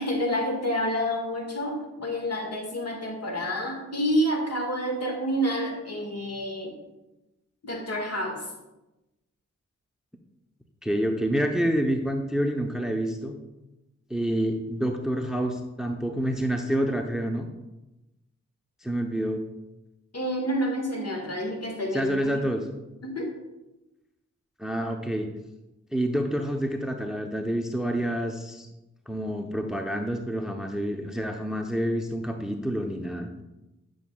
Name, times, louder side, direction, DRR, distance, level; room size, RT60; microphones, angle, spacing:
voice 1, 0.0-6.8 7.6-8.4 20.1-22.1 23.0-23.3, equal, 50° left, 2 dB, 1.6 m, -28 dB
voice 2, 10.8-13.4 14.1-17.5 18.8-19.4 21.9-22.7 24.6-25.3 25.9-28.7 29.1-33.4, equal, ahead, 4 dB, 0.7 m, -28 dB
9.1 x 6.3 x 2.3 m, 0.99 s
cardioid pair, 40°, 32 cm